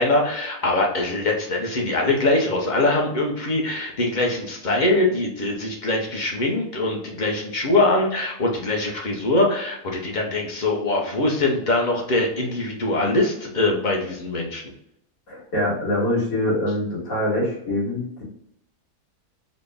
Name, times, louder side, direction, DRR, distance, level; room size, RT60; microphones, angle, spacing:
voice 1, 0.0-14.6, left 2 dB, 50° left, 0 dB, 0.5 m, -22 dB
voice 2, 15.3-18.2, left 1 dB, 65° left, -6 dB, 2.0 m, -24 dB
4.1 x 2.1 x 3.4 m, 0.75 s
omnidirectional pair, 1.6 m